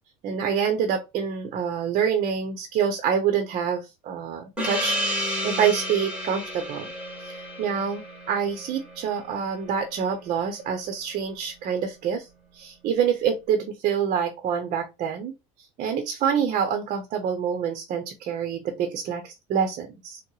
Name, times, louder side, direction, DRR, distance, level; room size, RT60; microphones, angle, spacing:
voice 1, 0.2-6.9 7.2-12.3 12.5-15.3 15.8-20.2, right 7 dB, 50° right, 0.7 m, -26 dB
Gong, 4.6-9.6, equal, 5° right, 1.5 m, -31 dB
4.5 x 2.1 x 3.0 m
supercardioid pair, 90°, 17 cm